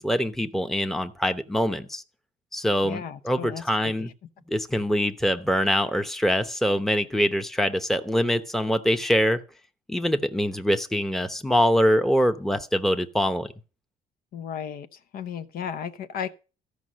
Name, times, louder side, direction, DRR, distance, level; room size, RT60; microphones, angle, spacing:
voice 1, 0.0-2.0 2.5-4.1 4.5-9.4 9.9-13.5, equal, ahead, 0.9 m, -24 dB
voice 2, 2.8-4.1 14.3-14.9 15.1-16.3, left 7 dB, 60° left, 0.9 m, -34 dB
14.5 x 5.4 x 6.2 m
cardioid pair, 110°, 17 cm